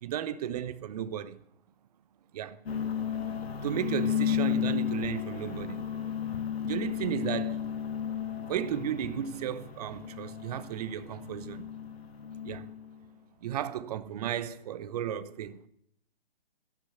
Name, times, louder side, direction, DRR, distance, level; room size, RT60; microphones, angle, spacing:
voice 1, 0.0-1.4 2.3-2.6 3.6-5.8 6.6-7.7 8.5-11.6 12.4-12.7 13.4-15.6, right 10 dB, 40° right, 0.8 m, -34 dB
sound 1, 2.7-12.9, left 8 dB, 90° left, 1.9 m, -33 dB
11.5 x 11.0 x 8.0 m
hypercardioid pair, 145°, 30 cm